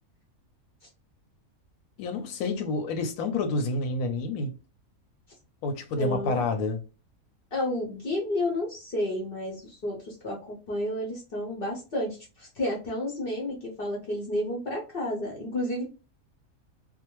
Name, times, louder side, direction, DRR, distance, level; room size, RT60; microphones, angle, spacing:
voice 1, 2.0-4.5 5.6-6.8, left 3 dB, 75° left, 1.0 m, -29 dB
voice 2, 6.0-6.4 7.5-15.8, left 1 dB, 55° left, 0.6 m, -31 dB
2.6 x 2.1 x 2.9 m
omnidirectional pair, 1.6 m